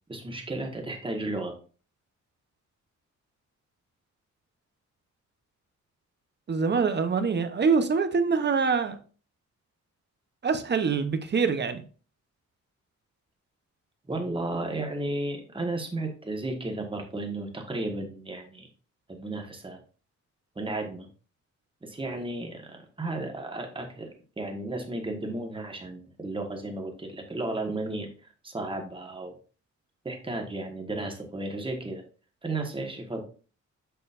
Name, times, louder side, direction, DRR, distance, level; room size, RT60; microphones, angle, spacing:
voice 1, 0.1-1.5 14.1-18.7 19.1-19.8 20.5-21.1 21.8-24.1 24.4-28.1 28.4-29.3 30.0-32.0 32.4-33.3, right 2 dB, 15° right, 1.4 m, -33 dB
voice 2, 6.5-9.0 10.4-11.8, right 5 dB, 35° right, 0.8 m, -24 dB
7.3 x 6.8 x 2.5 m
wide cardioid pair, 165°, 30 cm